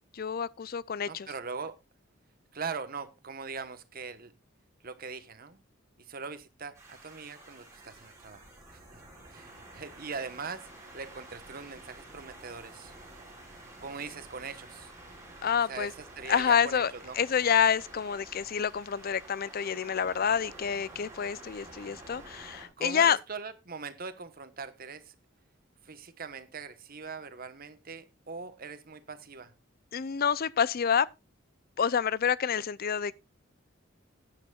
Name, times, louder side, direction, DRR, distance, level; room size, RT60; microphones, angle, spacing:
voice 1, 0.1-1.3 15.4-15.9 16.3-23.2 29.9-31.1 31.8-33.1, left 7 dB, 50° left, 0.5 m, -28 dB
voice 2, 1.1-1.7 2.5-4.3 4.8-5.6 6.1-8.4 8.7-9.0 9.3-10.7 10.9-12.9 13.8-14.9 15.7-17.2 22.8-25.1 25.8-29.5, right 5 dB, 45° right, 1.1 m, -41 dB
sound 1, 6.7-22.7, right 2 dB, 15° right, 5.2 m, -50 dB
16.0 x 9.8 x 2.4 m
head